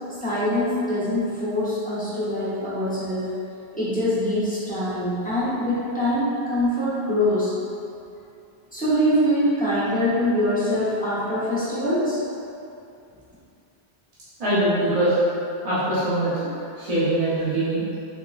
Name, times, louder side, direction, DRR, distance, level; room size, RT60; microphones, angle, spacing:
voice 1, 0.2-3.3 3.7-7.5 8.7-12.2, equal, 10° left, -12 dB, 0.8 m, -23 dB
voice 2, 14.4-15.2 15.6-17.8, right 1 dB, 40° right, -12 dB, 0.8 m, -23 dB
3.9 x 2.9 x 2.4 m, 2.6 s
omnidirectional pair, 1.0 m